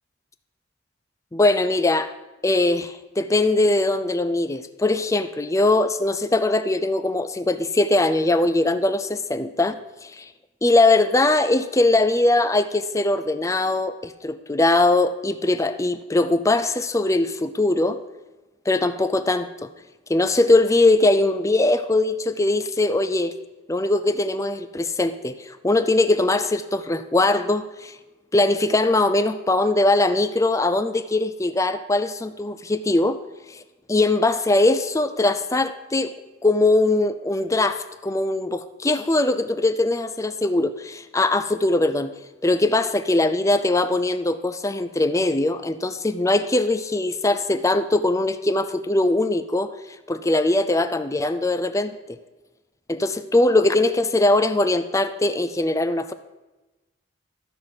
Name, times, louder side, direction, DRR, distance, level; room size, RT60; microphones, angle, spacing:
voice 1, 1.3-2.1 2.4-10.3 10.6-18.0 18.7-19.7 20.1-23.3 23.7-28.0 28.3-33.2 33.5-33.6 33.9-36.2 36.4-42.1 42.4-49.7 50.1-52.2 52.9-56.1, left 2 dB, 15° left, 11 dB, 0.4 m, -21 dB
13.0 x 6.1 x 7.6 m, 1.1 s
head